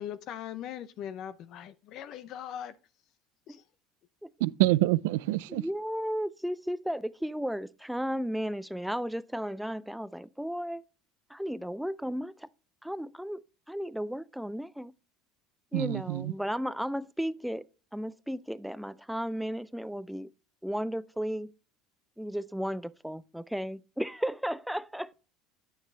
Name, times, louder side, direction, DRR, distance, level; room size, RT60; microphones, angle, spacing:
voice 1, 0.0-2.8 3.5-3.6, left 10 dB, 60° left, 0.6 m, -40 dB
voice 2, 4.4-5.6 15.7-16.3, right 18 dB, 85° right, 0.4 m, -26 dB
voice 3, 5.5-10.8 11.3-12.5 12.8-14.9 15.7-17.6 17.9-20.3 20.6-21.5 22.2-25.1, equal, ahead, 0.4 m, -34 dB
9.4 x 6.4 x 3.2 m
supercardioid pair, 100°, 0 cm